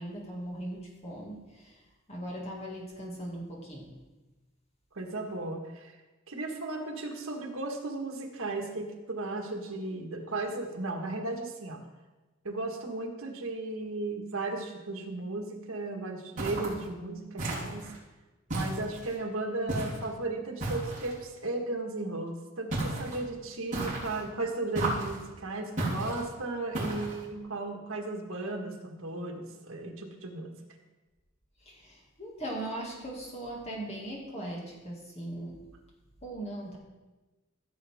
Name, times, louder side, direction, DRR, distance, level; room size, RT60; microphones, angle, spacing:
voice 1, 0.0-1.7 2.1-3.9 31.7-35.6 36.2-36.8, right 1 dB, 30° left, -2 dB, 2.2 m, -39 dB
voice 2, 4.9-6.0 6.3-11.8 12.4-17.9 18.5-30.5, right 2 dB, 75° right, 2 dB, 1.6 m, -35 dB
sound 1, 16.4-16.8 17.4-18.0 18.5-19.2 19.7-20.1 20.6-21.2 22.7-23.2 23.7-24.2 24.7-25.2 25.8-26.2 26.7-27.2, right 1 dB, 35° right, 3.5 m, -33 dB
15.5 x 7.2 x 3.6 m, 1.2 s
head